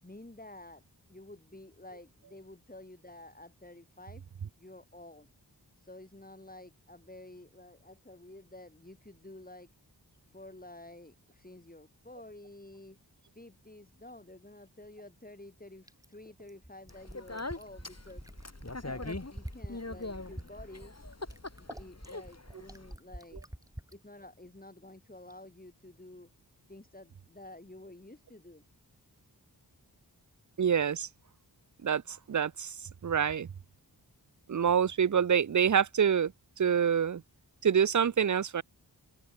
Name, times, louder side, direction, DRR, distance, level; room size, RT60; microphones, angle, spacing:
voice 1, 0.0-0.8 1.1-4.2 4.6-5.3 5.8-9.7 10.3-13.0 13.3-18.3 18.8-20.9 21.6-23.4 23.9-26.3 26.7-28.6, left 1 dB, 20° left, 2.8 m, -51 dB
Fill (with liquid), 15.9-24.0 25.3-25.4, right 1 dB, 10° right, 3.6 m, -45 dB
Speech, 16.9-22.9, left 2 dB, 40° left, 3.5 m, -42 dB
voice 2, 30.6-31.1 31.8-32.7 33.0-33.5 34.5-36.3 36.6-37.2 37.6-38.6, right 7 dB, 45° right, 0.6 m, -26 dB
open air
wide cardioid pair, 60°, 41 cm